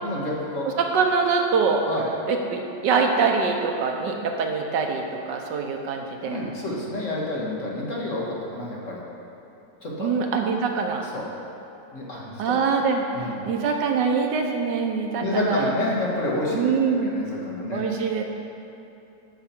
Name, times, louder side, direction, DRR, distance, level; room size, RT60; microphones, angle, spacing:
voice 1, 0.0-0.7 1.9-2.1 6.3-9.0 9.8-10.1 11.1-11.2 11.9-12.6 13.1-13.5 15.2-16.7 17.2-17.8, left 1 dB, 50° left, -4 dB, 1.7 m, -28 dB
voice 2, 0.6-1.8 2.3-6.4 10.0-11.1 12.4-15.7 16.5-17.2 17.7-18.2, right 5 dB, 85° right, 3 dB, 1.5 m, -24 dB
12.0 x 6.1 x 4.4 m, 3.0 s
omnidirectional pair, 1.8 m